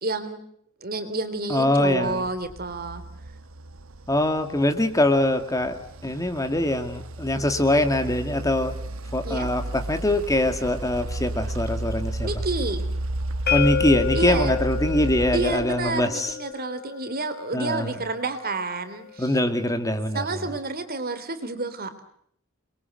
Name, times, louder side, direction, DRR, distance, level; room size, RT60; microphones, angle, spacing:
voice 1, 0.0-0.4 0.8-3.0 9.2-9.5 12.2-12.9 14.1-14.6 15.3-19.4 20.1-21.9, right 3 dB, 45° right, 10 dB, 3.5 m, -30 dB
voice 2, 1.5-2.2 4.1-8.7 9.1-12.3 13.5-16.3 17.5-17.9 19.2-20.3, left 1 dB, 15° left, 8 dB, 2.3 m, -23 dB
sound 1, 1.9-16.3, right 1 dB, 70° right, 1.1 m, -33 dB
sound 2, 13.5-19.3, left 8 dB, 45° left, 1.7 m, -31 dB
29.0 x 22.5 x 7.9 m, 0.67 s
head